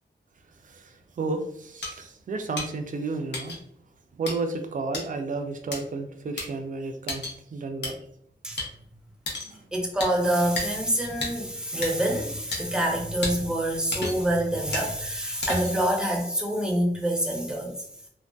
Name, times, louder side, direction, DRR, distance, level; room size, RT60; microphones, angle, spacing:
voice 1, 0.6-3.6 4.1-8.0 9.4-9.6, right 3 dB, 45° right, 6 dB, 0.4 m, -32 dB
sound 1, 1.8-1.9 2.6-2.7 3.3-3.6 4.3-4.4 4.9-5.1 5.7-5.8 6.4-6.5 7.1-7.3 7.8-7.9 8.6-8.7 9.3-9.5 10.0-10.1 10.6-10.7 11.2-11.3 11.8-11.9 12.5-12.6 13.2-13.3 13.9-14.3 14.7-14.9 15.4-15.8, left 2 dB, 70° left, 0.7 m, -31 dB
voice 2, 9.7-17.7, right 1 dB, 5° right, -1 dB, 0.6 m, -26 dB
2.5 x 2.2 x 2.2 m, 0.69 s
wide cardioid pair, 105°, 18 cm